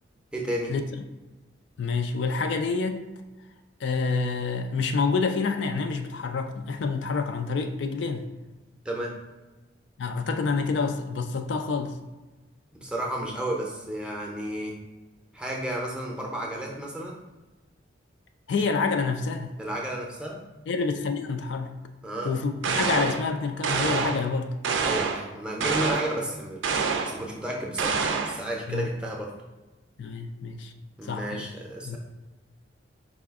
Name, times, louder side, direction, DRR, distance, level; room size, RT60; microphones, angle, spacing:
voice 1, 0.3-0.7 8.8-9.2 12.8-14.8 15.3-17.2 19.6-20.4 22.0-22.4 24.8-26.6 27.0-29.3 31.0-32.0, right 1 dB, 5° right, -2 dB, 0.6 m, -32 dB
voice 2, 1.8-3.2 3.8-8.3 10.0-12.0 18.5-19.6 20.7-21.7 22.2-24.5 28.7-28.9 30.0-30.7 31.0-31.5 31.9-32.0, left 4 dB, 70° left, 7 dB, 0.3 m, -28 dB
sound 1, 22.6-23.2 23.6-24.3 24.6-25.3 25.6-26.2 26.6-27.2 27.8-28.4, right 5 dB, 80° right, 0.4 m, -27 dB
4.8 x 2.4 x 3.5 m, 1.1 s
head